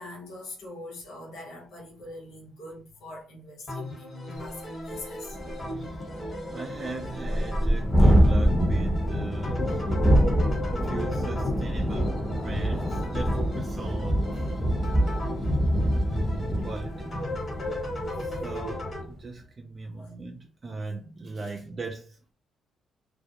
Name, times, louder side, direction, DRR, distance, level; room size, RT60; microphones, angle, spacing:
voice 1, 0.0-5.4 20.0-20.2, left 1 dB, 85° left, 0.7 m, -43 dB
sound 1, 3.7-19.0, left 1 dB, 35° left, 1.3 m, -36 dB
Thunderstorm, 4.5-4.6 4.9-5.0 5.3-18.9, equal, 15° left, 0.8 m, -25 dB
voice 2, 5.7-6.1 6.5-9.9 10.4-14.6 15.8-17.4 18.2-22.3, right 3 dB, 35° right, 0.4 m, -39 dB
2.3 x 2.0 x 2.7 m
cardioid pair, 90°, 0 cm